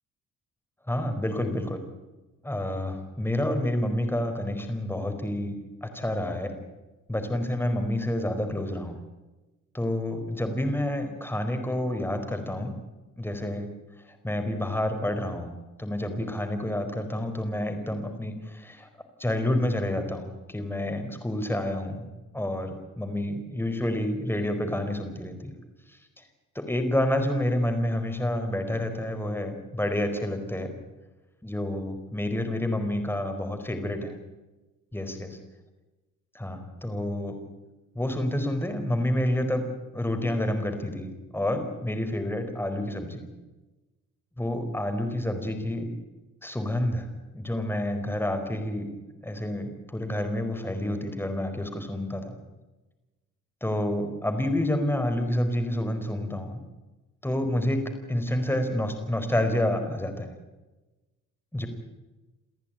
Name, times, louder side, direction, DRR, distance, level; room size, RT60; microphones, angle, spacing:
voice 1, 0.9-1.8 2.4-6.5 7.1-9.0 9.7-12.7 13.2-13.7 14.2-15.5 15.8-18.9 19.2-22.1 22.3-25.5 26.5-30.7 31.4-34.1 34.9-35.4 36.3-37.4 37.9-39.7 39.9-43.2 44.4-45.9 46.4-47.1 47.3-48.9 49.2-52.3 53.6-56.6 57.2-57.8 58.1-60.3 61.5-61.7, left 1 dB, 5° left, 6 dB, 4.5 m, -29 dB
29.5 x 14.5 x 9.1 m, 1.1 s
cardioid pair, 120°, 31 cm